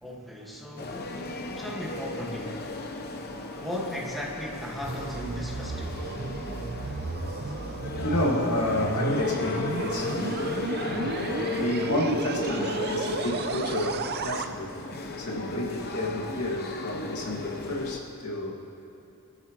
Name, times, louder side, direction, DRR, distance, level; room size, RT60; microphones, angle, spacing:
voice 1, 0.0-2.7 3.5-6.0 10.9-11.1 15.2-15.3, left 1 dB, ahead, -4 dB, 1.8 m, -37 dB
sound 1, 0.8-18.0, left 2 dB, 45° left, 1.0 m, -35 dB
sound 2, 4.4-14.5, right 4 dB, 50° right, 0.6 m, -34 dB
voice 2, 6.6-7.4 7.9-14.7 15.2-18.5, left 1 dB, 85° left, -2 dB, 2.1 m, -31 dB
24.0 x 13.0 x 3.1 m, 2.8 s
head